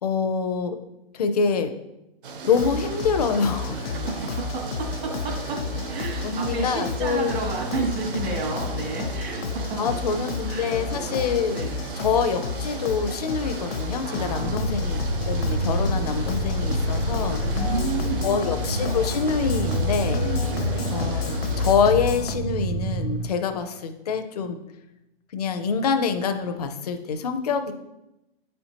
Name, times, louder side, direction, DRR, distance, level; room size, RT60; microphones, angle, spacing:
voice 1, 0.0-0.8 1.1-1.7 2.4-3.8 6.2-7.4 8.3-8.5 9.8-11.6 12.0-15.0 15.3-17.4 18.2-20.2 20.9-24.6 25.3-27.7, left 6 dB, 40° left, 6 dB, 0.5 m, -25 dB
sound 1, 2.2-21.7, right 4 dB, 60° right, 0.7 m, -37 dB
sound 2, 2.5-22.3, left 4 dB, 75° left, 0.7 m, -32 dB
voice 2, 3.9-5.6 5.9-9.8 10.5-11.2 11.5-11.8 14.0-14.7 17.3-18.6 20.2-20.6, right 4 dB, 75° right, -3 dB, 2.1 m, -31 dB
sound 3, 14.4-23.3, equal, 15° right, 0.3 m, -27 dB
8.3 x 4.4 x 2.8 m, 0.90 s
hypercardioid pair, 175°, 30 cm